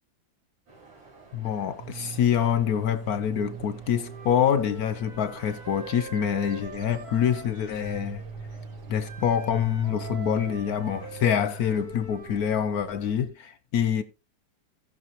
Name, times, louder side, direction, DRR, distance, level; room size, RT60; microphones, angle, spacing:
sound 1, 0.7-11.8, right 3 dB, 80° right, 5.9 m, -52 dB
voice 1, 1.3-8.2 8.9-14.0, left 8 dB, 65° left, 1.0 m, -26 dB
sound 2, 1.8-13.3, right 4 dB, 55° right, 1.3 m, -42 dB
Wind instrument woodwind instrument, 4.0-8.1 9.0-12.4, right 3 dB, 25° right, 1.4 m, -43 dB
17.0 x 6.0 x 2.9 m
omnidirectional pair, 2.0 m